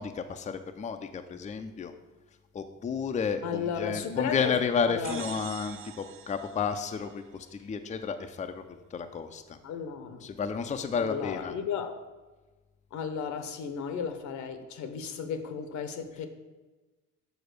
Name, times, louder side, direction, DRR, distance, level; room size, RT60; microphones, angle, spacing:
voice 1, 0.0-1.9 2.5-9.6 10.2-11.5, left 6 dB, 25° left, 7 dB, 0.5 m, -32 dB
voice 2, 3.4-4.6 4.9-5.3 9.6-10.3 11.0-12.0 12.9-16.3, left 7 dB, 65° left, 9 dB, 1.0 m, -34 dB
sound 1, 5.0-7.6, right 10 dB, 40° right, 0.5 m, -45 dB
7.0 x 4.3 x 6.5 m, 1.2 s
cardioid pair, 100°, 31 cm